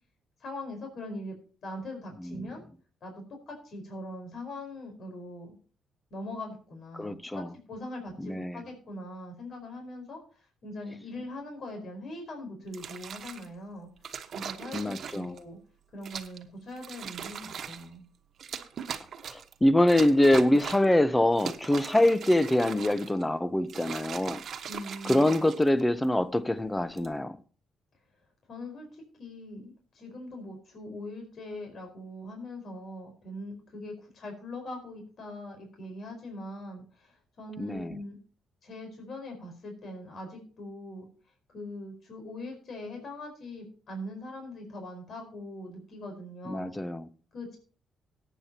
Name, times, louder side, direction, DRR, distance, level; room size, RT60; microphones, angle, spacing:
voice 1, 0.4-1.4 1.6-2.6 3.0-5.6 6.1-13.9 14.3-15.6 15.9-18.1 24.7-25.3 28.5-38.2 38.6-41.1 41.5-46.7 47.3-47.6, left 1 dB, 55° left, 4.7 m, -41 dB
voice 2, 2.2-2.5 6.9-7.5 8.2-8.6 14.7-15.3 19.2-24.4 25.0-27.4 37.6-38.0 46.5-47.1, left 1 dB, 10° left, 0.9 m, -25 dB
sound 1, 12.7-13.5 14.0-15.4 16.0-16.4 16.8-17.9 18.4-19.5 19.9-21.0 21.3-23.2 23.6-26.0 26.8-27.1, right 7 dB, 60° right, 1.3 m, -40 dB
18.0 x 9.2 x 2.9 m
cardioid pair, 90°, 0 cm